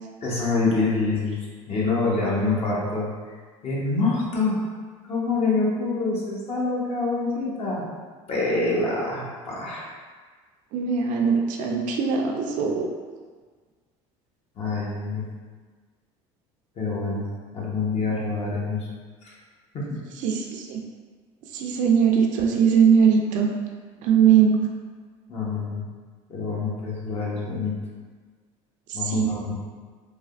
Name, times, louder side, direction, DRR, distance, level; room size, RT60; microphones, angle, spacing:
voice 1, 0.2-1.4 1.7-3.1 3.6-4.5 5.1-7.8 8.3-9.9 14.6-15.2 16.8-17.2 17.5-18.8 19.2-19.3 19.7-20.0 25.3-25.8 26.3-27.7 28.9-29.5, left 3 dB, 45° left, -5 dB, 0.9 m, -26 dB
voice 2, 10.7-12.9 20.2-20.8 21.5-23.5 24.0-24.7 28.9-29.4, right 7 dB, 60° right, 1 dB, 0.4 m, -20 dB
3.3 x 2.2 x 2.4 m, 1.5 s
supercardioid pair, 95°, 15 cm